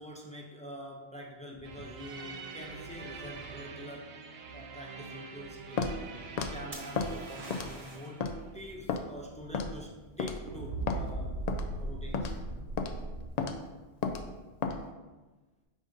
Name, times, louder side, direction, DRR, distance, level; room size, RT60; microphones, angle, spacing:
voice 1, 0.0-4.1 4.5-6.0 6.4-11.4 11.8-12.4, left 1 dB, 10° left, -1 dB, 0.5 m, -45 dB
sound 1, 1.6-10.2 10.5-13.3, right 3 dB, 60° right, 0.8 m, -42 dB
Walk footsteps, 5.8-6.0 6.4-6.5 7.0-7.1 7.5-7.8 8.2-8.3 8.9-9.0 9.5-9.8 10.2-10.4 10.9-11.0 11.5-11.7 12.1-12.4 12.8-12.9 13.4-13.6 14.0-14.2 14.6-14.8, left 5 dB, 85° left, 0.3 m, -32 dB
sound 2, 6.7-8.2 11.8-12.3, right 1 dB, 20° right, 1.1 m, -47 dB
4.9 x 3.9 x 5.1 m, 1.2 s
omnidirectional pair, 1.3 m